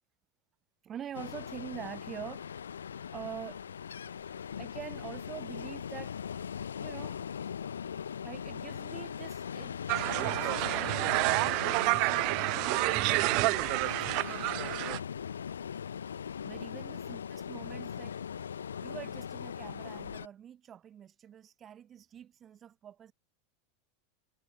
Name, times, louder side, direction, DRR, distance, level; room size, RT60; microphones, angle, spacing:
voice 1, 0.8-6.5 6.8-7.5 8.2-9.8 10.1-14.8 16.4-18.2 18.8-23.1, right 9 dB, 30° right, 6.3 m, -46 dB
Ocean, 1.1-20.3, left 7 dB, 75° left, 1.4 m, -40 dB
sound 1, 9.9-15.0, right 31 dB, 50° right, 1.4 m, -29 dB
figure-of-eight pair, 85°, 0 cm